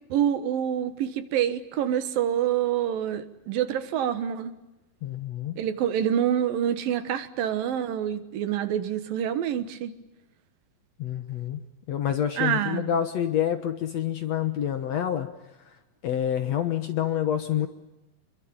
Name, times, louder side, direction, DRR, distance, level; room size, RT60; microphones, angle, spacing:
voice 1, 0.1-4.5 5.6-9.9 12.4-12.9, right 10 dB, 75° right, 12 dB, 3.1 m, -26 dB
voice 2, 5.0-5.6 11.0-11.6 11.9-15.3 16.0-17.7, left 10 dB, 60° left, 9 dB, 2.0 m, -27 dB
27.0 x 23.0 x 8.9 m, 0.96 s
omnidirectional pair, 4.2 m